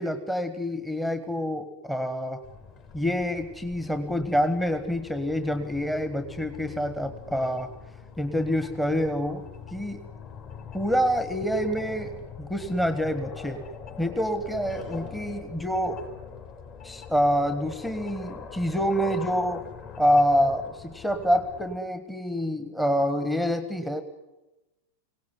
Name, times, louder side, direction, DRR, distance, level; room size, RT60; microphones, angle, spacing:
voice 1, 0.0-2.4 2.9-7.7 8.2-9.4 9.7-10.0 10.7-13.6 14.0-16.0 16.8-19.7 20.0-24.0, equal, 5° left, 10 dB, 1.5 m, -27 dB
sound 1, 2.4-21.8, left 6 dB, 40° left, 4.8 m, -43 dB
24.5 x 18.0 x 9.7 m, 1.0 s
figure-of-eight pair, 90°, 0 cm